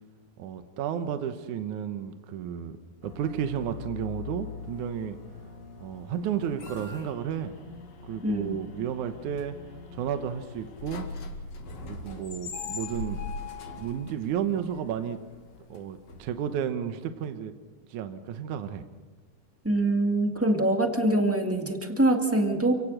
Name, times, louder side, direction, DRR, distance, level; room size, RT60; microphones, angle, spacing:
voice 1, 0.4-5.2 5.8-7.6 8.0-9.6 9.9-11.1 11.8-13.2 13.8-15.2 15.7-17.5 17.9-18.9, right 9 dB, 75° right, 8 dB, 2.4 m, -32 dB
sound 1, 3.0-16.7, left 4 dB, 55° left, 3.1 m, -41 dB
voice 2, 19.6-22.7, right 1 dB, 5° right, 4 dB, 1.3 m, -24 dB
28.5 x 18.0 x 6.5 m, 1.3 s
omnidirectional pair, 3.7 m